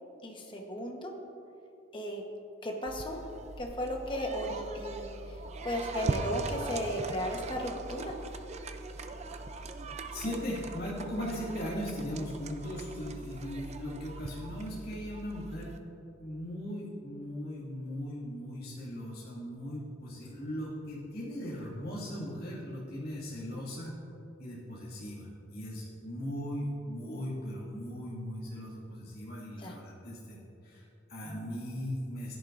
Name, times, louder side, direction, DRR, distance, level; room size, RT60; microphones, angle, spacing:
voice 1, 0.2-1.1 1.9-2.2 2.6-3.2 3.6-5.3 5.6-8.2 29.6-29.8, equal, 25° left, 1 dB, 1.1 m, -35 dB
sound 1, 2.9-15.8, right 3 dB, 35° right, 0.5 m, -40 dB
voice 2, 10.1-15.7 16.2-24.0 24.4-32.4, equal, 50° left, -8 dB, 2.2 m, -38 dB
15.5 x 10.5 x 2.6 m, 2.9 s
head